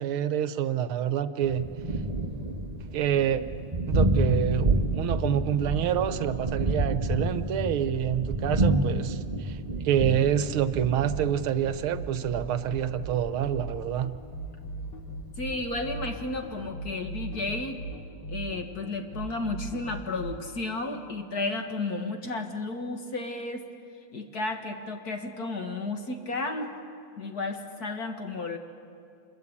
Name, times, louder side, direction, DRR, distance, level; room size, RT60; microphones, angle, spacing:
voice 1, 0.0-1.7 2.9-3.4 3.9-9.6 9.8-14.1, right 10 dB, 75° right, 12 dB, 1.7 m, -27 dB
Thunder, 1.4-16.7, right 2 dB, 20° right, 1.6 m, -30 dB
sound 1, 11.0-20.4, right 2 dB, 85° left, 3.5 m, -38 dB
voice 2, 15.4-17.8 18.3-23.7 24.1-26.8 27.2-28.6, left 3 dB, 45° left, 5 dB, 2.1 m, -33 dB
27.0 x 21.5 x 8.6 m, 2.4 s
omnidirectional pair, 2.4 m